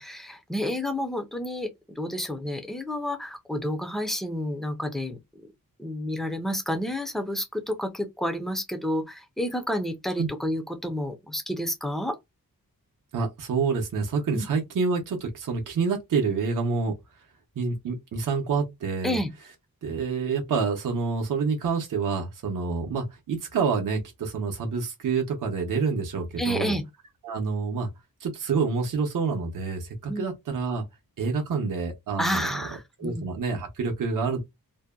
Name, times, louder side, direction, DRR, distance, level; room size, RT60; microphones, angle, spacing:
voice 1, 0.0-1.7 2.0-5.5 5.8-12.2 14.3-14.5 19.0-19.3 26.4-26.8 30.1-30.3 32.2-33.2, equal, ahead, 0.5 m, -30 dB
voice 2, 13.1-16.9 17.6-19.2 19.8-26.8 27.2-27.9 28.2-30.8 31.2-32.7 33.0-34.4, right 5 dB, 60° right, 0.7 m, -27 dB
2.7 x 2.1 x 2.2 m
wide cardioid pair, 175°, 37 cm